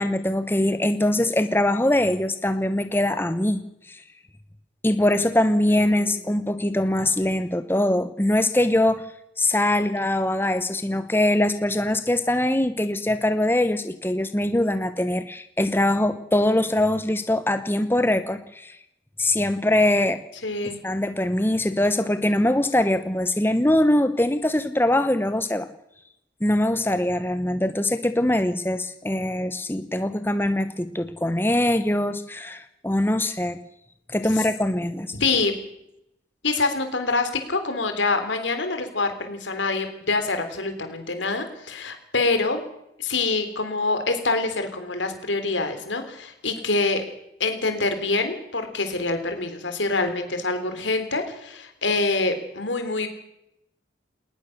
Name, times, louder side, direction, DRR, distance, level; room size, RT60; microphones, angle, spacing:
voice 1, 0.0-3.6 3.9-4.0 4.8-9.0 9.4-18.7 19.2-20.2 20.8-25.7 26.4-33.6 34.1-35.1, left 1 dB, 10° left, 10 dB, 0.9 m, -22 dB
voice 2, 5.7-6.4 20.4-20.8 34.4-34.5 35.1-35.5 36.4-42.6 43.0-47.0 47.4-53.1, left 3 dB, 85° left, 7 dB, 3.6 m, -26 dB
20.0 x 19.5 x 6.7 m, 0.82 s
head